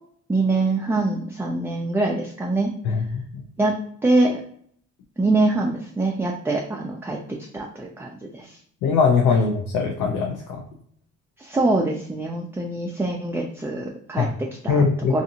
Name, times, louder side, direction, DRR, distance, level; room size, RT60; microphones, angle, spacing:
voice 1, 0.3-2.7 3.6-3.7 4.0-4.4 5.2-7.2 7.5-8.6 11.4-14.8 15.1-15.2, right 2 dB, 10° right, -1 dB, 0.3 m, -24 dB
voice 2, 8.8-10.6 14.2-14.3 14.7-15.1, left 5 dB, 85° left, 2 dB, 0.5 m, -21 dB
2.6 x 2.5 x 2.6 m, 0.63 s
cardioid pair, 90°, 30 cm